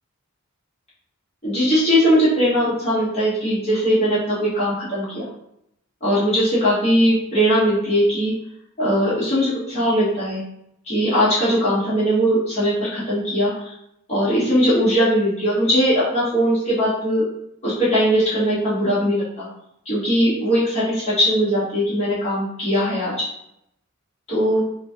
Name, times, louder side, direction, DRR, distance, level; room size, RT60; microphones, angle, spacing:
voice 1, 1.4-5.3 6.0-8.3 8.8-10.4 10.8-13.7 14.1-17.2 17.6-19.5 19.8-23.1 24.3-24.6, equal, 30° left, -11 dB, 1.3 m, -20 dB
2.9 x 2.7 x 3.5 m, 0.78 s
head